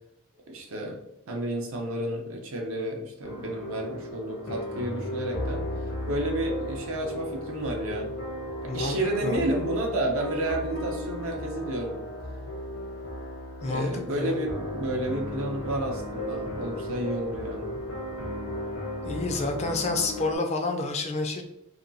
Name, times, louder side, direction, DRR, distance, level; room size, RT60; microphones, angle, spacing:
voice 1, 0.5-1.0 1.3-5.6 6.1-8.1 8.6-12.0 13.7-17.8, right 1 dB, 70° right, 0 dB, 0.5 m, -31 dB
sound 1, 3.2-20.4, left 1 dB, 65° left, 0.7 m, -35 dB
voice 2, 8.7-9.4 13.6-14.4 19.0-21.4, left 3 dB, 30° left, 4 dB, 0.4 m, -29 dB
2.8 x 2.2 x 2.5 m, 0.82 s
head